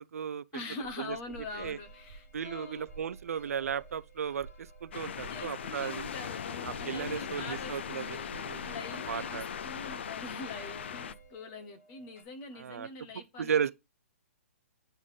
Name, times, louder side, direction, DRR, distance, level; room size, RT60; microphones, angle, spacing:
voice 1, 0.0-0.4 1.0-1.2 1.6-1.8 2.3-6.0 6.6-8.7 9.1-9.5 12.6-12.9 13.4-13.7, right 7 dB, 80° right, 0.5 m, -35 dB
voice 2, 0.5-2.9 5.3-8.3 8.6-13.6, left 3 dB, 15° left, 0.7 m, -44 dB
sound 1, 0.8-11.3, right 4 dB, 15° right, 1.1 m, -53 dB
sound 2, 1.3-12.2, right 1 dB, 70° left, 2.4 m, -59 dB
sound 3, 4.9-11.1, left 8 dB, 50° left, 0.4 m, -39 dB
8.0 x 3.7 x 3.9 m
hypercardioid pair, 175°, 8 cm